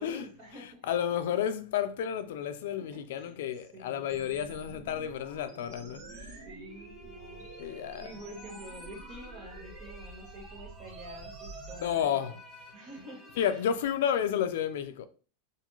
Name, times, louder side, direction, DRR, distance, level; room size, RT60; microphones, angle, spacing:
voice 1, 0.0-0.9 2.8-3.4 3.7-4.1 6.3-12.4 12.7-13.3, right 1 dB, 45° right, 1.3 m, -48 dB
voice 2, 0.6-6.4 7.6-8.1 11.8-12.4 13.4-15.1, left 9 dB, 75° left, 0.3 m, -31 dB
sound 1, 4.1-12.1, right 2 dB, 90° right, 0.7 m, -48 dB
sound 2, 6.7-14.4, right 1 dB, 5° left, 0.6 m, -52 dB
2.5 x 2.4 x 2.9 m
supercardioid pair, 135°, 0 cm